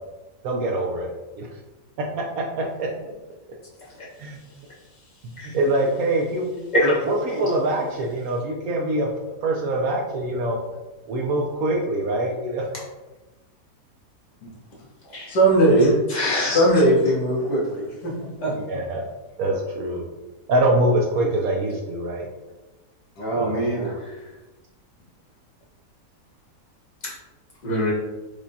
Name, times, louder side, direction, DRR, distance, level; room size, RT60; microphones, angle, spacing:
voice 1, 0.4-1.5 2.0-2.9 4.2-4.4 5.5-9.1 9.4-10.6 11.1-12.6 18.7-19.0 19.4-20.0 20.5-22.3 23.3-23.6, right 1 dB, 70° right, 0 dB, 0.9 m, -24 dB
voice 2, 15.3-16.0 16.5-18.1 18.4-18.5 23.2-24.0, right 1 dB, 80° left, -4 dB, 1.6 m, -19 dB
voice 3, 16.1-16.8 27.6-27.9, left 1 dB, 35° left, -5 dB, 0.8 m, -23 dB
4.8 x 2.2 x 2.7 m, 1.1 s
omnidirectional pair, 1.8 m